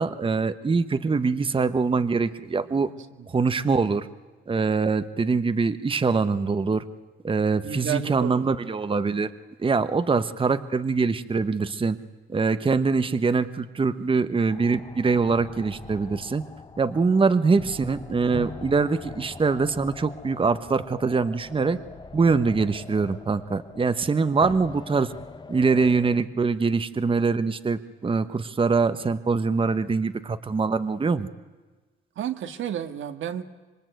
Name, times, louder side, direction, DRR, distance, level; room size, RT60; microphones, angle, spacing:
voice 1, 0.0-2.9 3.3-4.1 4.5-6.8 7.2-9.3 9.6-12.0 12.3-16.4 16.8-21.8 22.1-25.1 25.5-31.3, right 4 dB, 25° right, 12 dB, 1.1 m, -23 dB
voice 2, 7.6-8.4 32.2-33.4, right 9 dB, 75° right, 8 dB, 1.8 m, -31 dB
sound 1, 14.5-26.2, left 4 dB, 20° left, 1.1 m, -42 dB
26.5 x 22.5 x 9.3 m, 1.3 s
cardioid pair, 90°, 21 cm